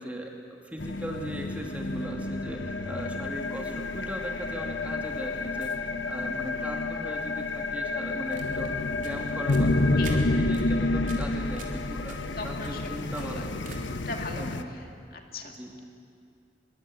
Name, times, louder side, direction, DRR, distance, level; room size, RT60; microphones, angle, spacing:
voice 1, 0.0-13.6 14.4-14.8 15.4-15.7, equal, 10° right, 0 dB, 2.6 m, -39 dB
sound 1, 0.8-14.6, left 2 dB, 90° left, 1.1 m, -29 dB
sound 2, 8.1-14.1, right 4 dB, 45° right, 3.5 m, -48 dB
voice 2, 12.4-12.9 13.2-13.5 14.1-15.6, left 3 dB, 55° left, 3 dB, 2.3 m, -39 dB
24.0 x 23.0 x 8.7 m, 2.4 s
head